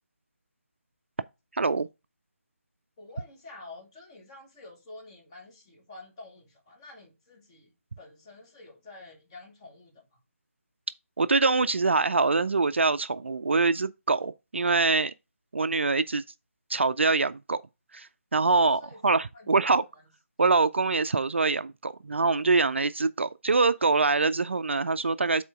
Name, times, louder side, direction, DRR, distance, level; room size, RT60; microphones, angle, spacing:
voice 1, 1.5-1.9 11.2-15.1 15.5-16.2 16.7-17.6 17.9-19.8 20.4-25.4, right 3 dB, 55° right, 0.4 m, -24 dB
voice 2, 3.0-10.2 18.8-19.0 19.3-19.8, left 2 dB, 20° left, 1.9 m, -49 dB
7.9 x 4.3 x 3.5 m
figure-of-eight pair, 155°, 8 cm